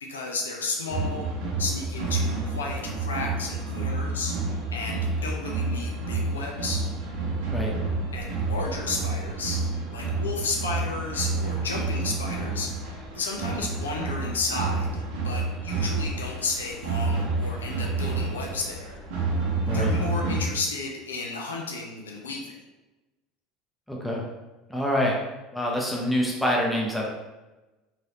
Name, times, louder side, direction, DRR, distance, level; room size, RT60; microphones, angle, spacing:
voice 1, 0.0-1.3 1.6-6.8 8.1-9.6 9.9-12.7 13.1-19.0 19.6-22.5, left 3 dB, 85° left, 0 dB, 0.5 m, -33 dB
sound 1, 0.9-20.4, right 3 dB, 70° right, 0.8 m, -29 dB
voice 2, 23.9-24.2 24.7-25.2 25.5-27.1, equal, 5° left, -3 dB, 0.6 m, -26 dB
3.1 x 2.8 x 2.8 m, 1.1 s
hypercardioid pair, 75°, 0 cm